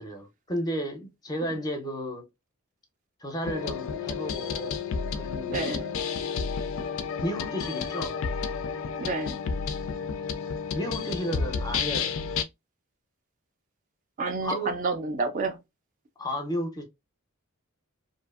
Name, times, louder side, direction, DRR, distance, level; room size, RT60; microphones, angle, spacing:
voice 1, 0.0-2.2 3.2-4.8 5.1-5.8 7.2-8.2 10.7-12.2 14.4-14.7 16.2-16.8, equal, 20° left, 0.5 m, -33 dB
sound 1, 3.4-12.4, left 6 dB, 65° left, 0.4 m, -31 dB
voice 2, 5.5-5.9 9.0-9.4 14.2-15.6, right 3 dB, 35° right, 0.4 m, -29 dB
2.6 x 2.5 x 2.3 m
head